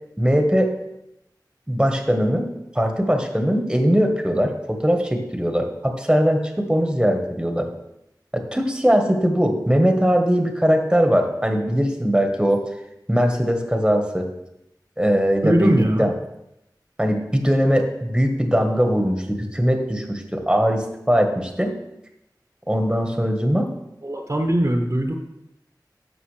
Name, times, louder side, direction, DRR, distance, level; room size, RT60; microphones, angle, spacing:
voice 1, 0.2-0.7 1.7-2.5 2.7-7.7 8.3-12.6 13.1-14.3 15.0-16.1 17.0-21.7 22.7-23.7, equal, 10° right, 4 dB, 1.3 m, -20 dB
voice 2, 15.4-16.1 24.0-25.1, right 1 dB, 40° right, 3 dB, 1.0 m, -20 dB
11.5 x 7.0 x 3.3 m, 0.83 s
wide cardioid pair, 55°, 8 cm